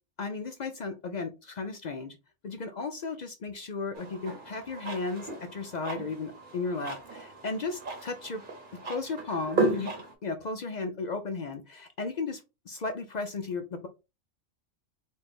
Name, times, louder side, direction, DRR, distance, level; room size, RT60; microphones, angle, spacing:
voice 1, 0.2-2.2 2.4-8.4 8.8-9.9 10.2-13.9, left 4 dB, 60° left, 6 dB, 0.4 m, -35 dB
sound 1, 3.9-10.1, right 2 dB, 45° right, 1.0 m, -35 dB
4.1 x 2.4 x 3.5 m, 0.27 s
omnidirectional pair, 1.3 m